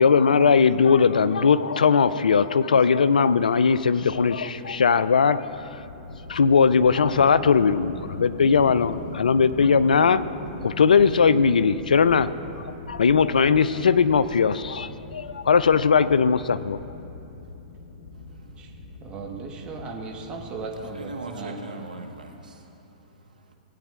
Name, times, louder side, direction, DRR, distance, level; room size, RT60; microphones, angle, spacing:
voice 1, 0.0-5.7 6.3-10.2 10.6-12.3 12.6-16.8, left 5 dB, 80° left, 15 dB, 0.3 m, -19 dB
sound 1, 3.8-21.0, left 3 dB, 60° left, 1.2 m, -41 dB
voice 2, 18.1-18.6 20.9-23.5, right 2 dB, 85° right, 3 dB, 1.1 m, -41 dB
voice 3, 19.0-21.6, right 4 dB, 25° right, 1 dB, 1.2 m, -36 dB
16.5 x 9.0 x 2.4 m, 2.9 s
hypercardioid pair, 115°, 4 cm